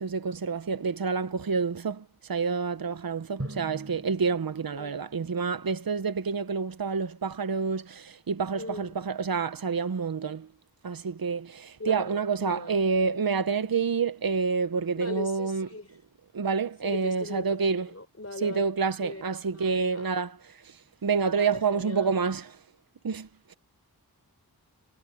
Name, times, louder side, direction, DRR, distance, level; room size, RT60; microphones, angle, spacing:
voice 1, 0.0-2.0 2.3-10.5 10.8-15.7 16.3-17.9 18.4-20.4 21.0-22.5 23.0-23.5, right 5 dB, 65° right, 0.8 m, -28 dB
Drum, 3.4-6.0, right 1 dB, 40° right, 6.7 m, -42 dB
voice 2, 8.5-8.9 11.8-12.8 15.0-16.0 16.8-18.7 19.0-19.2 19.5-20.1 21.3-22.2, left 2 dB, 40° left, 4.3 m, -39 dB
wide cardioid pair, 45°, 38 cm